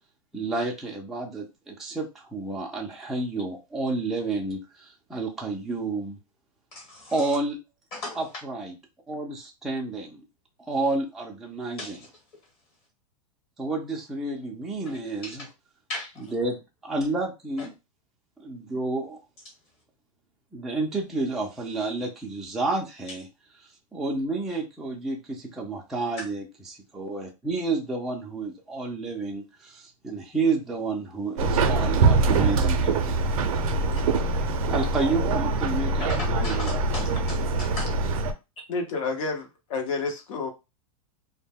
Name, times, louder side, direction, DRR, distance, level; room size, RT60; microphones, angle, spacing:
voice 1, 0.3-6.2 7.1-7.6 8.1-8.8 9.1-10.2 10.6-12.0 13.6-15.5 16.2-17.7 18.4-19.2 20.5-23.3 23.9-33.4 34.7-37.1, right 3 dB, ahead, 0.3 m, -30 dB
voice 2, 6.7-7.4 7.9-8.2 11.8-12.1 15.2-15.5 15.9-16.3 17.6-17.7 26.2-26.3 36.1-38.0, left 2 dB, 30° left, 1.1 m, -37 dB
Subway metro underground, 31.4-38.3, right 3 dB, 70° right, 0.5 m, -23 dB
voice 3, 38.7-40.5, left 4 dB, 60° left, 0.8 m, -30 dB
2.2 x 2.0 x 3.4 m
supercardioid pair, 155°, 19 cm